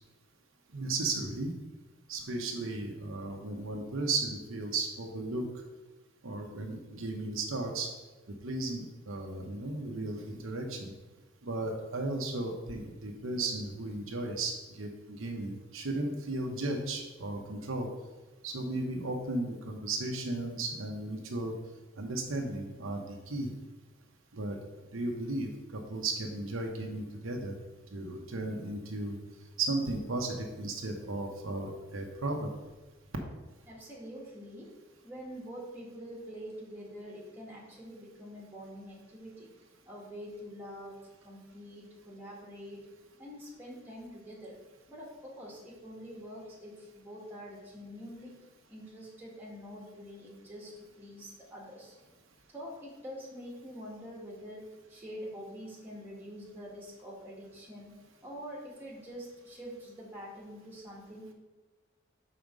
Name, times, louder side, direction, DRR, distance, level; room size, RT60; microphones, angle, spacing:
voice 1, 0.7-1.5 2.1-5.4 6.2-7.9 8.4-10.9 11.4-17.9 18.4-21.5 22.0-23.5 24.3-24.6 24.9-27.5 27.9-29.2 29.6-32.5, right 2 dB, 80° right, 2 dB, 0.9 m, -35 dB
voice 2, 33.7-34.7 35.0-39.5 39.8-42.9 43.2-44.6 44.9-48.3 48.7-51.9 52.5-57.9 58.2-61.3, equal, 10° right, -4 dB, 1.7 m, -45 dB
5.2 x 4.3 x 6.1 m, 1.2 s
head